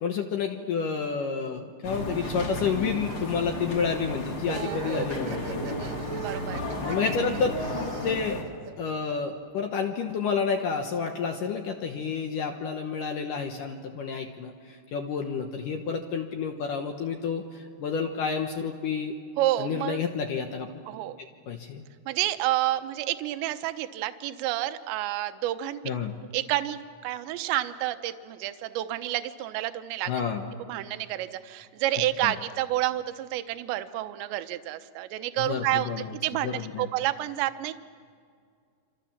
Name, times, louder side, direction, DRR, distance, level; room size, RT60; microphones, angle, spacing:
voice 1, 0.0-5.6 6.8-8.4 8.8-19.1 19.6-20.7 21.5-21.8 25.8-26.1 30.1-30.5 32.2-32.3 35.4-36.1 36.4-36.9, left 6 dB, 70° left, 4 dB, 2.1 m, -30 dB
sound 1, 1.8-8.4, left 1 dB, 40° left, 3.9 m, -33 dB
sound 2, 4.5-9.1, right 5 dB, 50° right, 2.4 m, -40 dB
voice 2, 4.5-5.1 5.8-6.7 19.4-20.0 20.9-21.2 22.1-25.8 26.3-30.1 30.5-37.7, right 14 dB, 80° right, 10 dB, 3.1 m, -30 dB
27.0 x 26.5 x 7.2 m, 2.1 s
omnidirectional pair, 5.3 m